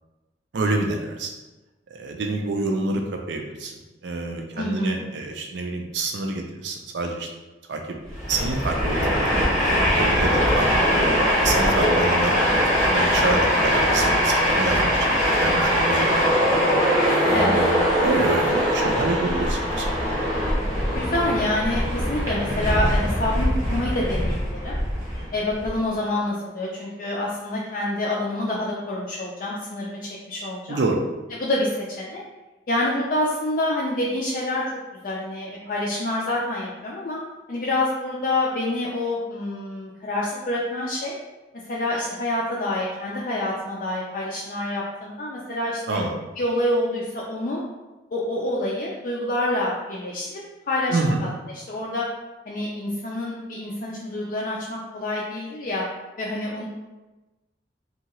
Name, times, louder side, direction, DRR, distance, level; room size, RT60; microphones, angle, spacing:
voice 1, 0.5-1.3 1.9-3.7 4.0-7.3 7.7-7.9 8.3-9.4 10.0-10.8 11.3-16.5 17.3-19.9 30.7-31.0 45.9-46.1 50.9-51.2, right 3 dB, 70° right, 3 dB, 0.4 m, -27 dB
voice 2, 4.6-5.0 17.3-17.6 20.9-24.8 25.3-30.8 31.3-32.2 32.7-34.6 35.0-37.2 37.5-41.2 41.7-46.0 46.4-47.6 48.1-50.4 50.7-51.0 51.5-52.1 52.5-55.9 56.2-56.6, left 1 dB, 45° left, -5 dB, 0.4 m, -27 dB
Train, 8.1-25.7, equal, 15° right, 0.7 m, -21 dB
2.7 x 2.3 x 2.9 m, 1.1 s
head